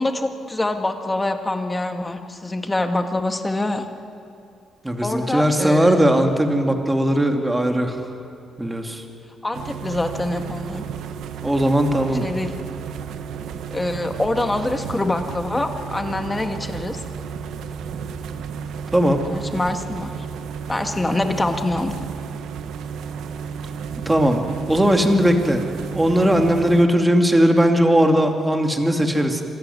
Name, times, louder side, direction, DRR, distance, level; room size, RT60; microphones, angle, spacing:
voice 1, 0.0-3.8 5.0-6.0 9.4-10.8 12.1-12.5 13.7-17.0 19.3-20.1 20.7-21.9, left 2 dB, 15° left, 6 dB, 1.8 m, -25 dB
voice 2, 4.8-8.0 8.6-9.0 11.4-12.2 18.9-19.2 24.1-24.4 24.7-25.6 25.9-29.4, equal, 10° right, 4 dB, 2.6 m, -18 dB
sound 1, 9.5-26.8, right 7 dB, 80° right, 1.2 m, -33 dB
26.0 x 14.0 x 9.5 m, 2.5 s
cardioid pair, 90°, 0 cm